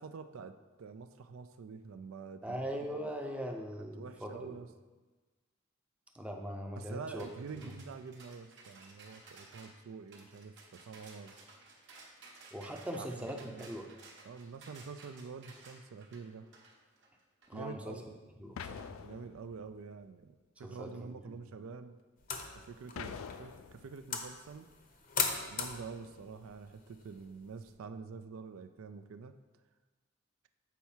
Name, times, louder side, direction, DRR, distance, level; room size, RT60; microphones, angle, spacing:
voice 1, 0.0-3.1 4.0-4.7 6.8-11.4 12.9-13.7 14.2-16.5 17.5-18.0 19.0-22.0 22.5-24.7 25.5-29.3, right 5 dB, 80° right, 10 dB, 0.4 m, -47 dB
voice 2, 2.4-4.6 6.1-7.3 12.5-13.9 17.5-18.0 18.4-18.9 20.6-21.4, equal, 5° right, 3 dB, 0.5 m, -41 dB
sound 1, 7.2-17.6, right 3 dB, 60° right, 1.1 m, -56 dB
sound 2, 18.6-19.8 23.0-23.9, left 6 dB, 85° left, 0.4 m, -45 dB
sound 3, 22.2-27.7, left 5 dB, 40° left, 0.7 m, -40 dB
7.0 x 4.6 x 4.4 m, 1.3 s
head